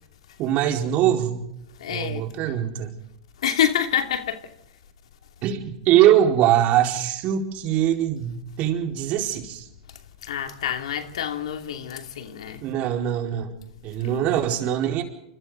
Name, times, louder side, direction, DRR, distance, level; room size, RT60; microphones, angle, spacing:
voice 1, 0.4-1.5 1.9-2.9 5.4-9.7 12.6-13.5 13.8-15.0, right 11 dB, 45° right, 4.5 m, -22 dB
voice 2, 1.8-2.2 3.4-4.4 10.2-12.6 14.1-14.3, left 9 dB, 75° left, 2.7 m, -27 dB
28.5 x 26.5 x 4.0 m
hypercardioid pair, 105°, 3 cm